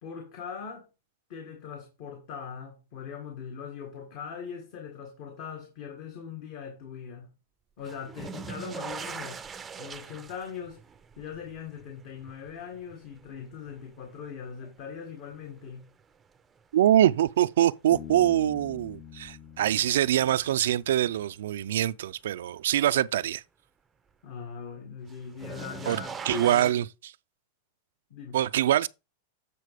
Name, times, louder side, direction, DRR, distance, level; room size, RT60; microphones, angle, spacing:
voice 1, 0.0-0.9 1.3-7.3 7.8-9.4 9.8-10.9 11.2-15.9 24.2-26.7 28.1-28.4, left 7 dB, 50° left, 1.8 m, -40 dB
sound 1, 7.8-14.9 15.3-16.0 17.6-17.7 19.3-19.4 25.1-26.7, right 6 dB, 15° right, 0.5 m, -41 dB
voice 2, 16.7-23.4 25.9-26.8 28.3-28.9, right 12 dB, 80° right, 0.4 m, -24 dB
Bass guitar, 17.9-21.4, left 9 dB, 30° left, 0.6 m, -45 dB
8.4 x 4.1 x 5.0 m
supercardioid pair, 140°, 0 cm